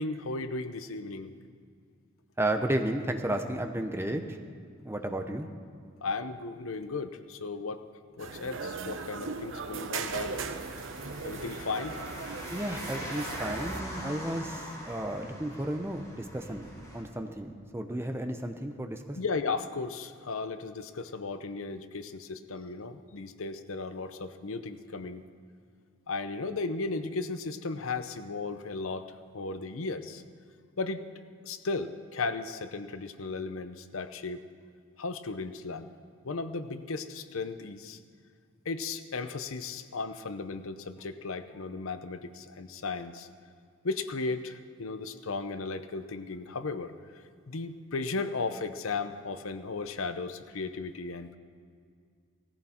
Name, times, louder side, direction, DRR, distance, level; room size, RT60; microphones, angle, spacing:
voice 1, 0.0-1.3 6.0-7.8 8.2-10.3 11.2-11.9 19.2-25.2 26.1-29.0 29.3-30.2 30.8-31.0 31.4-34.4 35.0-35.9 36.2-38.0 38.7-43.3 43.8-46.9 47.5-51.4, left 3 dB, 90° left, 11 dB, 0.8 m, -35 dB
voice 2, 2.4-4.4 4.8-5.5 12.5-19.2, right 1 dB, 10° right, 5 dB, 0.8 m, -33 dB
sound 1, 8.2-13.8, right 4 dB, 70° right, 0.9 m, -38 dB
sound 2, 10.1-17.0, equal, 15° left, 4.1 m, -42 dB
18.0 x 15.0 x 4.4 m, 2.2 s
head